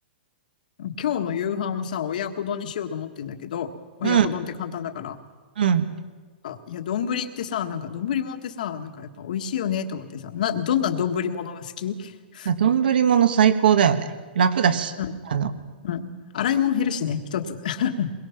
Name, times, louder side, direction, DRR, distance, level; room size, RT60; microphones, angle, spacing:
voice 1, 0.8-3.7 4.0-5.2 6.4-12.5 15.0-15.1 15.8-18.1, left 8 dB, 50° left, 7 dB, 1.5 m, -28 dB
voice 2, 5.6-5.9 12.4-14.1 14.3-14.9 15.3-15.5, right 8 dB, 65° right, 10 dB, 1.5 m, -19 dB
22.5 x 22.0 x 5.9 m, 1.4 s
hypercardioid pair, 180°, 6 cm